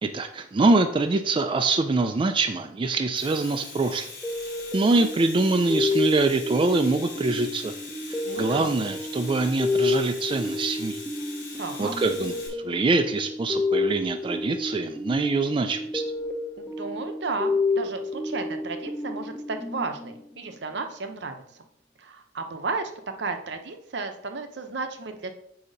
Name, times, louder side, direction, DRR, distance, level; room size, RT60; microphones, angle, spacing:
voice 1, 0.0-4.1 4.4-7.7 8.1-11.0 11.8-16.0, right 3 dB, 30° right, 6 dB, 0.3 m, -24 dB
Domestic sounds home sounds, 3.1-12.5, left 4 dB, 65° left, 2.8 m, -42 dB
sound 1, 4.2-20.6, left 3 dB, 5° left, 0.7 m, -30 dB
voice 2, 8.2-8.7 11.6-11.9 16.6-21.4 22.0-22.9 23.2-25.3, right 4 dB, 65° right, 7 dB, 0.8 m, -33 dB
8.1 x 2.9 x 5.1 m, 0.73 s
head